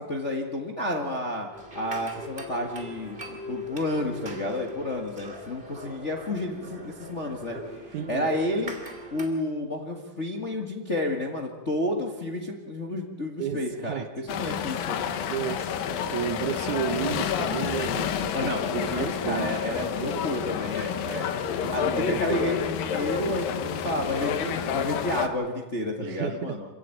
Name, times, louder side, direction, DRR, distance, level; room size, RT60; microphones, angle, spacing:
voice 1, 0.0-1.5 1.7-3.2 3.5-7.6 7.9-8.7 9.1-15.0 18.3-21.3 21.7-26.7, left 1 dB, 30° left, 1 dB, 1.3 m, -30 dB
sound 1, 1.5-9.3, left 1 dB, 15° right, 2.6 m, -41 dB
voice 2, 7.9-8.4 13.4-14.1 15.3-19.5 20.0-20.3 21.6-22.6 26.0-26.6, right 10 dB, 70° right, 10 dB, 2.0 m, -33 dB
sound 2, 14.3-25.3, left 8 dB, 75° left, 2.9 m, -29 dB
26.5 x 15.5 x 9.2 m, 1.2 s
omnidirectional pair, 4.1 m